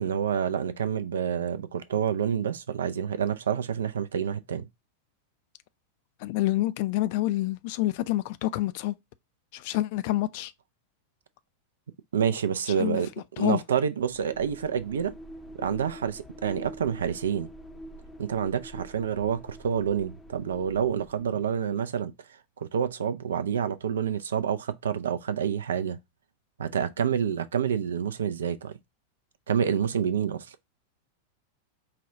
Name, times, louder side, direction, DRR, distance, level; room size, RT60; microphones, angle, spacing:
voice 1, 0.0-4.7 12.1-13.1 13.4-15.2 15.5-17.5 18.2-22.1 22.6-26.0 26.6-28.7 29.5-30.6, right 8 dB, 65° right, 0.4 m, -28 dB
voice 2, 6.2-8.9 9.5-10.5 12.8-13.0 13.4-13.6, left 16 dB, 50° left, 0.3 m, -27 dB
sound 1, 14.0-21.8, equal, 10° left, 0.6 m, -46 dB
4.9 x 2.3 x 3.8 m
figure-of-eight pair, 90°, 0 cm